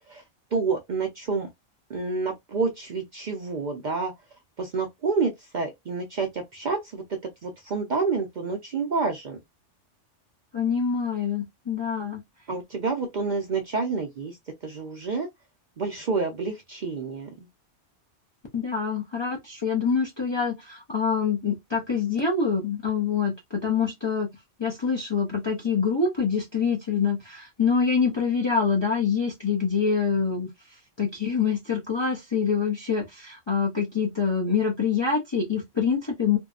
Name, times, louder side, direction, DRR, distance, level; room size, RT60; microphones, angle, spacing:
voice 1, 0.5-1.5 1.9-4.1 4.6-9.4 12.5-15.3 15.8-17.3, right 4 dB, 55° right, 0.5 m, -28 dB
voice 2, 10.5-12.2 18.5-24.3 24.6-30.5 31.0-36.4, left 6 dB, 35° left, 0.4 m, -25 dB
2.6 x 2.1 x 2.3 m
omnidirectional pair, 1.2 m